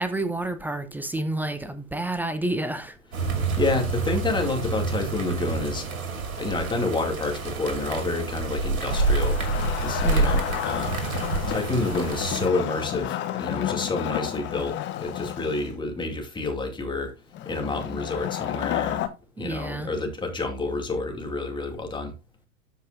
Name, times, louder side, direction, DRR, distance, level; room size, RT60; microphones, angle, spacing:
voice 1, 0.0-2.9 10.0-10.3 19.4-19.9, right 2 dB, 5° right, 0.5 m, -29 dB
sound 1, 3.1-12.5, right 3 dB, 75° right, 2.6 m, -28 dB
voice 2, 3.2-5.9 6.4-9.4 9.8-11.0 11.5-17.1 17.4-19.1 19.4-22.1, left 3 dB, 10° left, 2.4 m, -29 dB
Wood, 8.9-15.7 17.3-19.1, left 12 dB, 25° left, 0.9 m, -31 dB
13.0 x 5.4 x 2.6 m
figure-of-eight pair, 100°, 42 cm